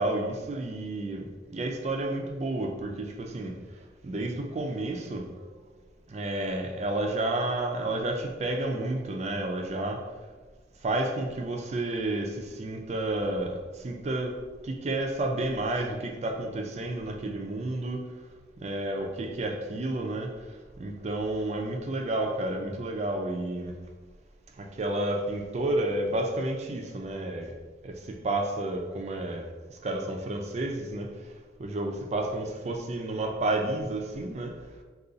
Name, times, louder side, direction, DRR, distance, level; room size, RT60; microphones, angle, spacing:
voice 1, 0.0-3.5 4.0-5.3 6.1-10.0 10.8-13.6 13.8-14.3 14.7-18.1 18.6-20.3 20.8-23.7 24.6-27.5 27.8-27.9 28.2-29.4 29.8-31.1 31.6-34.5, right 2 dB, 40° right, 0.4 m, -30 dB
2.5 x 2.3 x 3.7 m
head